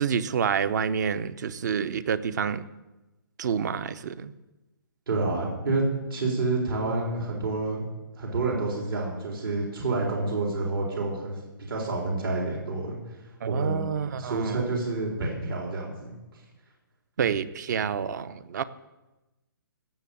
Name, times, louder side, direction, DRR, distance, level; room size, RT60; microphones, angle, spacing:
voice 1, 0.0-2.7 3.4-4.3 13.4-14.7 17.2-18.6, right 7 dB, 50° right, 14 dB, 0.8 m, -28 dB
voice 2, 5.1-7.9 8.2-13.0 13.5-13.9 14.2-16.4, right 3 dB, 80° right, -1 dB, 4.2 m, -28 dB
16.5 x 6.9 x 8.6 m, 1.1 s
hypercardioid pair, 155°, 12 cm